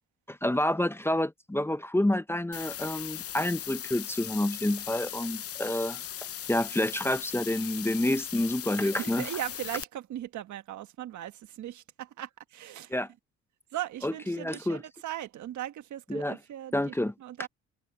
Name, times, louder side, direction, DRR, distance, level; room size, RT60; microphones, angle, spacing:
voice 1, 0.3-6.0 6.5-9.2 12.9-13.1 14.0-14.8 16.1-16.4 16.7-17.1, left 1 dB, 10° left, 0.8 m, -28 dB
sound 1, 2.5-9.8, left 10 dB, 50° left, 0.7 m, -39 dB
voice 2, 8.8-13.1 13.7-17.5, right 12 dB, 75° right, 1.4 m, -39 dB
cardioid pair, 90°, 30 cm